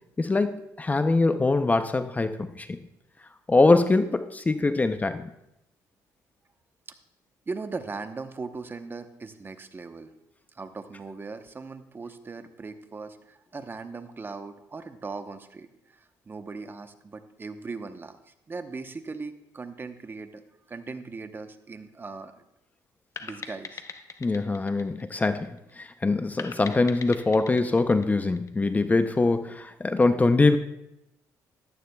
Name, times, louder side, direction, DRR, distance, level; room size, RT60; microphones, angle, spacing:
voice 1, 0.2-2.8 3.5-5.3 24.2-30.6, left 3 dB, 20° left, 10 dB, 0.6 m, -23 dB
voice 2, 7.5-10.1 10.5-20.4 20.7-22.4 23.2-23.8, right 4 dB, 30° right, 9 dB, 0.9 m, -39 dB
sound 1, 23.2-25.7 26.4-28.9, left 5 dB, 40° left, 0.9 m, -42 dB
13.5 x 12.5 x 2.3 m, 0.86 s
supercardioid pair, 80°, 7 cm